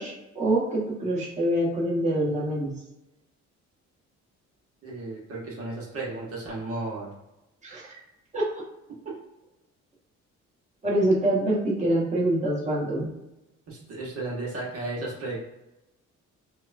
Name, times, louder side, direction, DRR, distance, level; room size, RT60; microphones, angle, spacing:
voice 1, 0.0-2.7 7.6-7.8 8.3-8.6 10.8-13.1, right 1 dB, 25° right, -6 dB, 1.3 m, -25 dB
voice 2, 4.8-7.1 13.7-15.4, right 2 dB, 50° right, -5 dB, 1.2 m, -34 dB
4.5 x 2.2 x 2.6 m, 0.94 s
cardioid pair, 90°, 30 cm